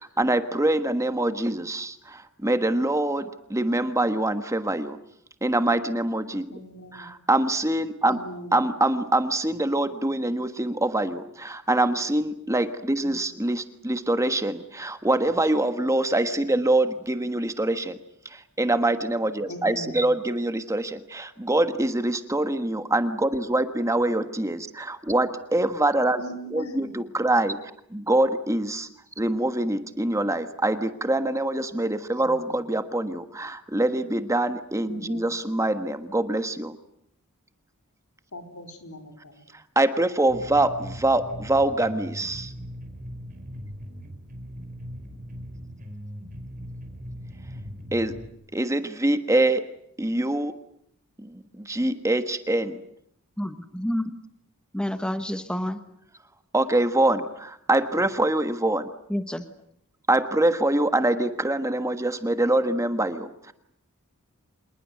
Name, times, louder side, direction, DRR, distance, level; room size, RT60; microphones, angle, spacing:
voice 1, 0.0-5.0 5.4-6.5 7.0-8.2 8.5-18.0 18.3-26.2 26.5-27.5 28.1-28.9 29.2-36.8 39.7-42.5 47.9-48.1 48.5-49.7 50.0-50.6 51.2-52.8 56.5-58.9 60.1-63.5, right 1 dB, 15° right, 9 dB, 1.4 m, -24 dB
voice 2, 6.5-7.1 8.0-8.6 12.9-13.2 16.5-16.6 19.5-20.0 26.2-27.0 32.2-32.6 34.9-35.3 38.3-39.4, equal, 75° left, 5 dB, 4.4 m, -40 dB
sound 1, 40.3-48.3, equal, 40° right, 5.1 m, -39 dB
voice 3, 53.4-54.1 54.7-55.8 59.1-59.5, left 1 dB, 5° left, 9 dB, 1.3 m, -29 dB
27.0 x 20.5 x 9.4 m, 0.72 s
head